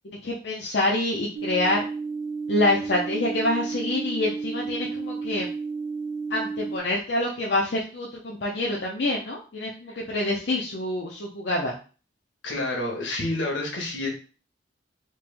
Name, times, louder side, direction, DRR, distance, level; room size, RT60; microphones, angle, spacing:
voice 1, 0.0-1.8 2.5-5.5 6.3-11.7, left 1 dB, 65° left, -3 dB, 0.6 m, -26 dB
sound 1, 1.3-6.8, right 4 dB, 75° right, 0.4 m, -32 dB
voice 2, 12.4-14.1, left 2 dB, 80° left, 0 dB, 1.3 m, -29 dB
3.3 x 3.0 x 3.4 m, 0.37 s
head